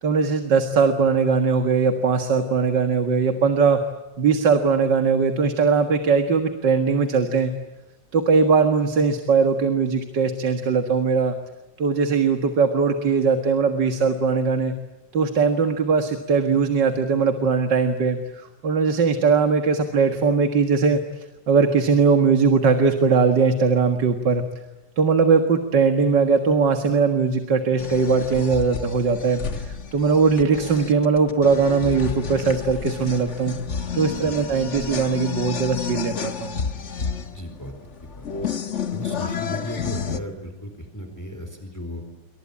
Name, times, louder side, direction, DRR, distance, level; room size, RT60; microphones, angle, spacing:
voice 1, 0.0-3.8 4.2-7.5 8.1-11.3 11.8-14.7 15.1-24.4 25.0-33.6 33.9-36.5, right 5 dB, 70° right, 7 dB, 2.4 m, -20 dB
sound 1, 27.8-40.2, left 6 dB, 40° left, 1.6 m, -31 dB
voice 2, 37.3-37.7 38.1-38.5 38.9-42.0, left 1 dB, 10° left, 6 dB, 4.2 m, -35 dB
28.0 x 24.5 x 8.6 m, 1.1 s
omnidirectional pair, 2.0 m